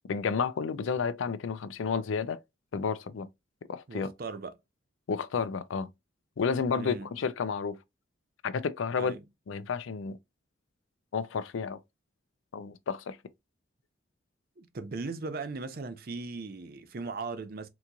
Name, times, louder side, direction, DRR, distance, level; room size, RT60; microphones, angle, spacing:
voice 1, 0.1-2.4 2.7-3.3 3.7-4.1 5.1-5.9 6.4-7.8 8.4-9.1 9.5-10.2 11.1-11.8 12.5-13.2, left 5 dB, 75° left, 0.4 m, -31 dB
voice 2, 3.9-4.6 6.8-7.1 9.0-9.2 14.6-17.7, right 3 dB, 50° right, 0.5 m, -38 dB
3.8 x 2.9 x 2.2 m
head